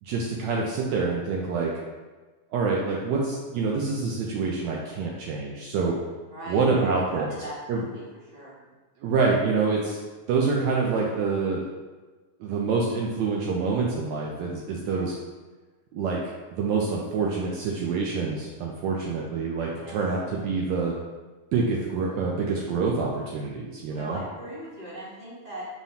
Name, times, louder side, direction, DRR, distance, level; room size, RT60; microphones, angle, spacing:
voice 1, 0.0-1.7 2.5-5.9 6.5-7.3 7.7-7.8 9.0-10.0 10.3-11.7 12.4-15.1 15.9-16.2 16.5-20.9 21.5-24.2, right 4 dB, 80° right, -2 dB, 1.6 m, -26 dB
voice 2, 6.3-8.0 8.3-8.5 14.9-15.1 19.7-20.0 23.9-25.7, right 1 dB, 20° right, -10 dB, 1.1 m, -39 dB
5.5 x 3.1 x 5.5 m, 1.3 s
omnidirectional pair, 3.8 m